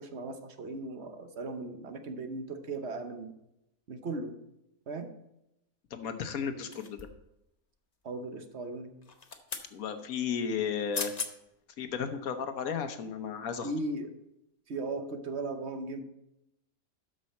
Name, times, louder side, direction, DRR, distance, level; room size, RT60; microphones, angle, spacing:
voice 1, 0.0-3.3 3.9-4.4 4.9-5.1 8.0-8.9 13.6-14.1 14.7-16.0, right 2 dB, 55° right, 7 dB, 1.1 m, -37 dB
voice 2, 5.9-7.1 9.7-11.1 11.8-13.7, left 7 dB, 75° left, 8 dB, 1.3 m, -34 dB
sound 1, 6.7-7.3 9.0-9.7 10.7-10.8 10.9-11.3 11.9-12.0, left 5 dB, 35° left, 0.8 m, -38 dB
12.5 x 5.5 x 4.2 m, 0.85 s
omnidirectional pair, 1.5 m